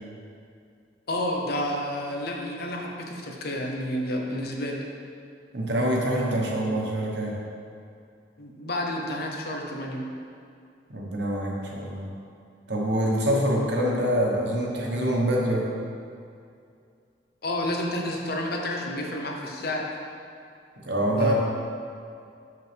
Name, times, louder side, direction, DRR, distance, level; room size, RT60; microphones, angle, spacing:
voice 1, 1.1-4.8 8.4-10.0 17.4-19.9 21.1-21.3, left 1 dB, 60° left, 1 dB, 0.8 m, -30 dB
voice 2, 5.5-7.3 10.9-12.1 12.7-15.7 20.8-21.3, right 1 dB, 70° right, -2 dB, 1.2 m, -25 dB
6.6 x 6.5 x 3.5 m, 2.4 s
head